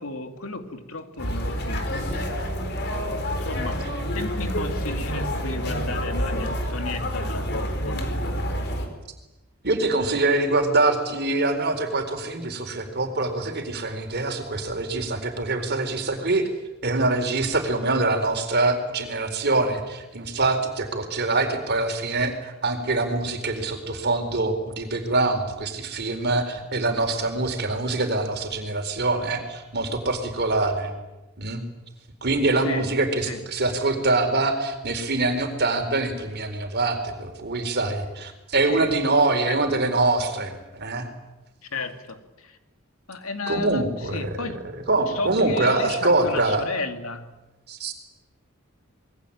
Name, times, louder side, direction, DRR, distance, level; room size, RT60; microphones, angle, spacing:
voice 1, 0.0-2.6 3.4-8.1 32.6-32.9 33.3-33.4 38.7-38.9 39.5-39.8 41.7-42.6 43.1-44.6 45.1-47.3, left 3 dB, 75° left, 6 dB, 2.8 m, -34 dB
sound 1, 1.2-8.9, equal, 50° left, 4.6 m, -28 dB
voice 2, 9.6-16.5 16.8-30.9 31.4-31.6 32.2-41.1 43.5-44.5 44.9-46.7 47.7-47.9, right 2 dB, 50° right, 6 dB, 4.4 m, -24 dB
28.0 x 22.0 x 8.8 m, 1.0 s
head